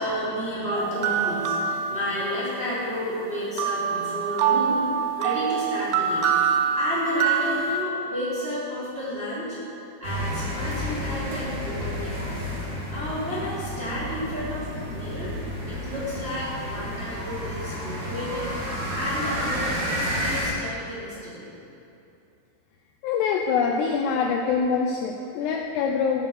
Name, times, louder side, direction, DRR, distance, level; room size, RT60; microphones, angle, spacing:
voice 1, 0.0-4.8 5.1-6.3 6.7-9.6 10.0-12.2 12.9-15.3 15.6-18.5 18.9-21.5, equal, 15° right, -10 dB, 2.2 m, -31 dB
sound 1, 0.8-2.6 3.6-7.8, right 7 dB, 80° right, 2.6 m, -25 dB
sound 2, 10.0-20.4, equal, 45° right, 3.4 m, -31 dB
voice 2, 23.0-26.3, left 6 dB, 85° left, 2 dB, 2.4 m, -24 dB
15.0 x 7.1 x 6.4 m, 2.7 s
omnidirectional pair, 5.4 m